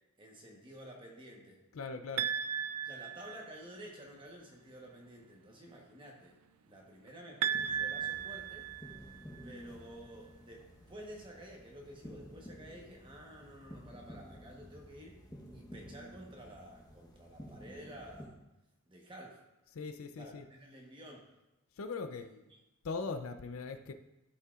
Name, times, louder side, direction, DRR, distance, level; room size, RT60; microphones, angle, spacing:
voice 1, 0.2-1.6 2.8-6.4 6.6-8.7 9.4-15.2 15.5-18.4 18.9-19.4 20.2-21.2 22.1-22.6, equal, 25° right, -1 dB, 1.1 m, -51 dB
voice 2, 1.7-2.3 19.7-20.4 21.8-22.3 22.8-23.9, left 4 dB, 75° left, 8 dB, 0.5 m, -40 dB
sound 1, 2.2-3.8 7.4-9.4, right 9 dB, 80° right, 0.3 m, -36 dB
sound 2, 7.5-18.3, equal, 20° left, 1.0 m, -52 dB
12.5 x 5.5 x 2.4 m, 0.99 s
head